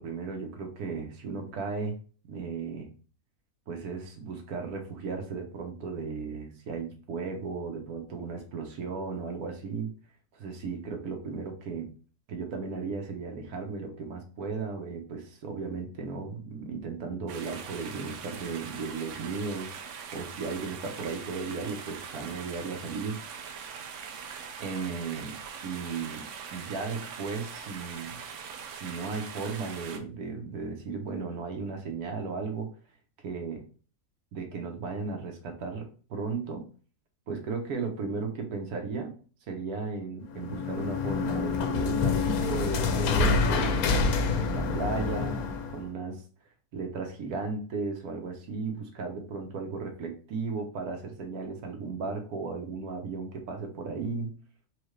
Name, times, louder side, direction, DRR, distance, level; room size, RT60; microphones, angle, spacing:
voice 1, 0.0-2.0 2.3-2.9 3.7-9.9 10.3-11.9 12.3-23.2 24.6-25.3 25.6-26.3 26.5-28.2 28.7-32.7 33.2-33.6 34.3-36.7 37.3-39.1 39.5-45.4 45.7-46.2 46.7-54.3, right 4 dB, 85° right, 3 dB, 1.4 m, -35 dB
sound 1, 17.3-30.0, right 6 dB, 70° right, 0.8 m, -42 dB
sound 2, 40.3-45.8, left 4 dB, 80° left, 1.1 m, -27 dB
4.5 x 2.4 x 3.1 m, 0.39 s
omnidirectional pair, 1.5 m